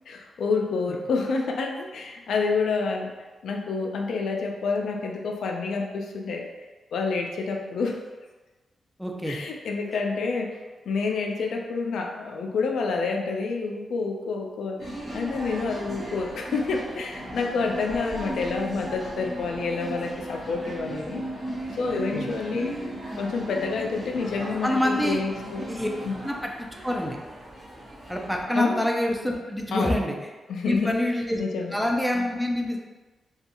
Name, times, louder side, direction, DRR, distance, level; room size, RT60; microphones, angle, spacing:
voice 1, 0.1-3.1 3.4-6.5 6.9-8.0 9.2-10.6 10.9-21.2 21.8-22.7 23.2-25.7 26.1-26.2 28.5-28.8 29.7-30.0 30.5-30.9 31.4-31.8, left 4 dB, 90° left, 1 dB, 0.3 m, -28 dB
voice 2, 9.0-9.4 21.9-22.3 24.6-25.2 25.7-25.9 26.2-26.5 26.8-27.2 28.1-30.2 30.6-31.4 31.7-32.8, left 1 dB, ahead, 0 dB, 0.4 m, -26 dB
sound 1, 14.8-28.4, right 1 dB, 35° right, 0.7 m, -36 dB
2.7 x 2.3 x 2.5 m, 1.2 s
wide cardioid pair, 110°, 0 cm